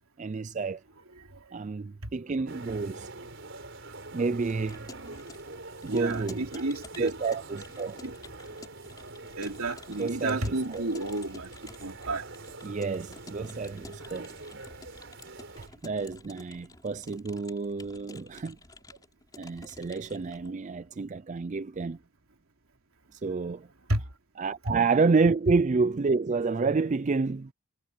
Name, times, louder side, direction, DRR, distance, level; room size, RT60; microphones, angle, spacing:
voice 1, 0.2-0.8 1.5-3.1 4.1-4.9 5.8-6.6 7.0-8.0 10.0-10.9 12.6-14.3 15.6-18.6 19.4-22.0 23.1-23.7 24.4-27.5, right 4 dB, 35° right, 0.4 m, -29 dB
voice 2, 1.2-1.5 2.0-2.1 4.9-5.3 5.9-7.1 8.0-8.1 8.6-8.7 9.4-11.5 11.8-12.7 13.7-13.8 23.9-24.0, right 2 dB, 70° right, 3.3 m, -32 dB
sound 1, 2.5-15.7, right 3 dB, 55° right, 5.0 m, -45 dB
Keyboard (musical) / Computer keyboard, 4.4-20.5, left 2 dB, 15° left, 4.1 m, -51 dB
head